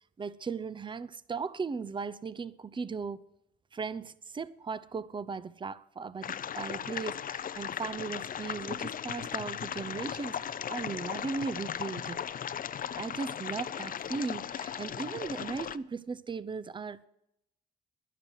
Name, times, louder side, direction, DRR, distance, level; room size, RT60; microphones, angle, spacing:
voice 1, 0.2-3.2 3.7-12.2 13.0-17.1, right 5 dB, 25° right, 0.6 m, -37 dB
sound 1, 6.2-15.8, left 9 dB, 45° left, 0.5 m, -37 dB
12.0 x 11.0 x 6.3 m
cardioid pair, 90°, 20 cm